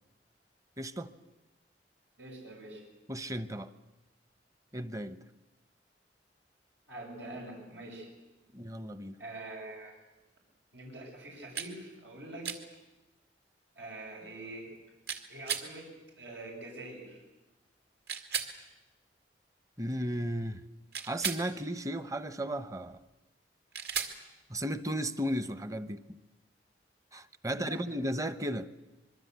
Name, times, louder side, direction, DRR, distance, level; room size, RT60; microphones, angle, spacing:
voice 1, 0.8-1.1 3.1-3.7 4.7-5.2 8.5-9.2 19.8-20.6 21.1-23.0 24.5-26.2 27.1-28.7, equal, 20° right, 0.9 m, -35 dB
voice 2, 2.2-2.8 6.9-8.1 9.2-10.0 10.7-12.5 13.8-14.7 15.3-15.9 16.2-17.2 27.5-27.8, right 2 dB, 90° right, 7.5 m, -44 dB
sound 1, 11.6-11.7 12.4-12.6 15.1-15.7 18.1-18.5 20.9-21.5 23.7-24.2, right 7 dB, 65° right, 2.3 m, -34 dB
25.5 x 22.5 x 8.2 m
head